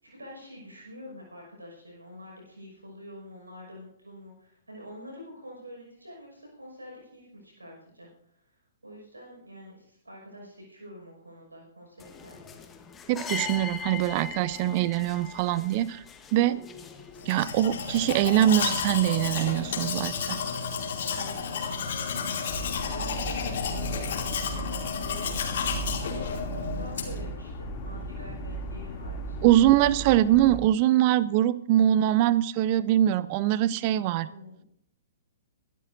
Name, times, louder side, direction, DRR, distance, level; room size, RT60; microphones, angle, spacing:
voice 1, 0.0-8.1 8.4-8.5 8.8-12.4 21.1-22.4 22.8-25.6 26.0-29.7 34.2-34.6, equal, 85° right, -1 dB, 5.8 m, -46 dB
sound 1, 12.0-17.3, left 6 dB, 15° left, 1.3 m, -40 dB
voice 2, 13.1-16.0 16.3-16.6 17.3-20.4 29.4-34.3, right 13 dB, 40° right, 18 dB, 0.5 m, -23 dB
Domestic sounds home sounds, 17.2-27.3, left 6 dB, 55° left, 2.7 m, -32 dB
sound 2, 22.5-30.6, right 1 dB, 35° left, 2.8 m, -37 dB
23.0 x 12.0 x 2.7 m, 0.72 s
figure-of-eight pair, 115°, 0 cm